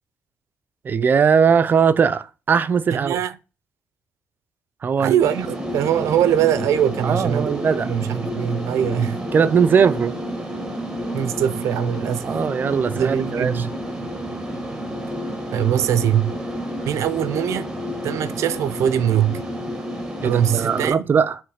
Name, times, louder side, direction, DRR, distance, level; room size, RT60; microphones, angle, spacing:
voice 1, 0.8-3.2 4.8-5.2 7.0-7.9 9.3-10.2 12.2-13.7 20.2-21.4, right 6 dB, 40° right, 0.5 m, -19 dB
voice 2, 2.9-3.4 5.0-7.6 7.8-9.2 11.1-13.7 15.5-16.3 16.8-17.7 18.0-19.4 20.2-21.1, right 10 dB, 85° right, 0.6 m, -22 dB
sound 1, 5.2-20.9, equal, 10° right, 1.2 m, -30 dB
8.1 x 3.2 x 6.3 m
cardioid pair, 145°, 5 cm